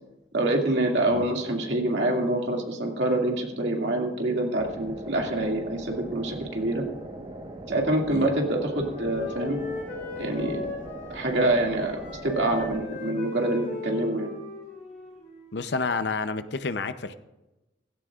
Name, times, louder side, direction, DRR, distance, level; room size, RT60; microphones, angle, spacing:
voice 1, 0.3-6.8 7.7-9.6 10.2-10.7 11.1-14.3, right 1 dB, 65° right, 0 dB, 2.3 m, -26 dB
sound 1, 4.6-12.9, right 1 dB, 30° right, 1.3 m, -41 dB
Wind instrument woodwind instrument, 8.4-11.5 11.8-15.7, left 2 dB, 45° left, 5.4 m, -38 dB
voice 2, 15.5-17.1, left 4 dB, 60° left, 11 dB, 0.6 m, -29 dB
16.5 x 16.0 x 2.5 m, 1.0 s
head